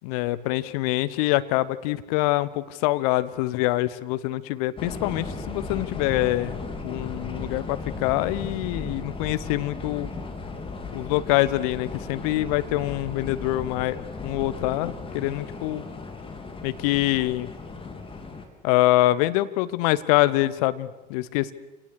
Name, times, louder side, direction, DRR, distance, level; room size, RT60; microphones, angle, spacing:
voice 1, 0.0-6.6 6.8-10.1 10.9-15.8 16.6-17.5 18.6-21.5, left 17 dB, 65° left, 15 dB, 0.9 m, -25 dB
sound 1, 4.8-18.5, left 3 dB, 25° left, 3.2 m, -36 dB
27.0 x 18.5 x 6.4 m, 1.1 s
figure-of-eight pair, 60°, 21 cm